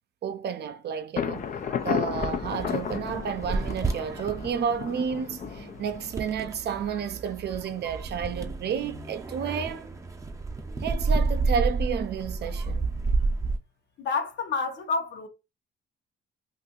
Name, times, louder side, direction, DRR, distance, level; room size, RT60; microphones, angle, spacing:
voice 1, 0.2-1.5 1.8-9.9 10.8-12.9, right 7 dB, 60° right, 0.5 m, -31 dB
Thunder, 1.2-6.8, left 7 dB, 40° left, 0.4 m, -33 dB
sound 1, 1.4-13.6, right 3 dB, 15° right, 0.6 m, -31 dB
voice 2, 14.0-15.3, left 4 dB, 65° left, 0.9 m, -29 dB
2.7 x 2.5 x 3.8 m
cardioid pair, 90°, 20 cm